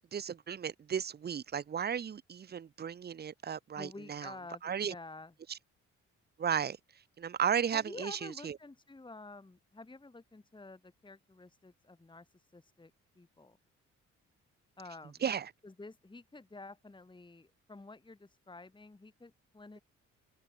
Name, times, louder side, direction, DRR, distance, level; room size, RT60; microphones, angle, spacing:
voice 1, 0.1-4.3 4.6-4.9 5.5-5.6 6.4-6.8 7.2-8.6 15.2-15.5, right 7 dB, 35° right, 0.7 m, -34 dB
voice 2, 3.8-5.3 7.7-13.6 14.8-15.2 15.6-19.8, left 3 dB, 15° left, 2.9 m, -50 dB
open air
cardioid pair, 90°, 30 cm